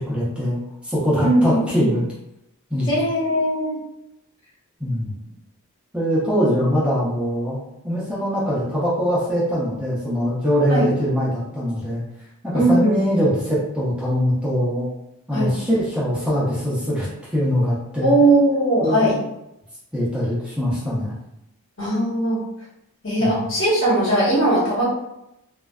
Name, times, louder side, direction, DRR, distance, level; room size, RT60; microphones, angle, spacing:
voice 1, 0.1-2.1 2.7-2.9 4.8-5.1 5.9-7.6 7.8-12.0 12.4-14.9 15.3-18.1 18.8-19.1 19.9-21.1 23.2-23.3, equal, 5° right, -9 dB, 0.6 m, -22 dB
voice 2, 1.2-1.9 2.9-3.8 10.7-10.9 12.5-13.2 15.3-15.5 18.0-19.2 21.8-22.4 23.0-24.8, right 1 dB, 55° left, -7 dB, 1.0 m, -19 dB
2.5 x 2.2 x 2.2 m, 0.85 s
head